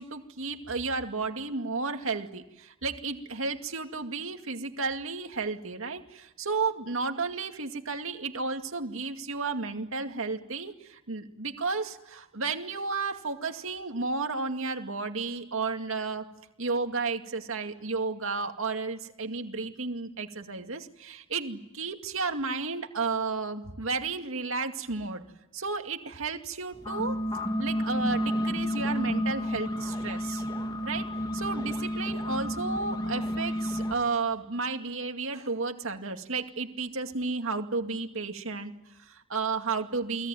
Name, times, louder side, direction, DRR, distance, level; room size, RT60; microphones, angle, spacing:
voice 1, 0.0-16.3 16.6-25.2 25.5-27.2 27.6-30.4 30.8-40.3, right 4 dB, 70° right, 5 dB, 2.3 m, -33 dB
sound 1, 26.7-33.9, equal, 20° left, 3.1 m, -31 dB
29.5 x 20.5 x 9.2 m, 0.91 s
head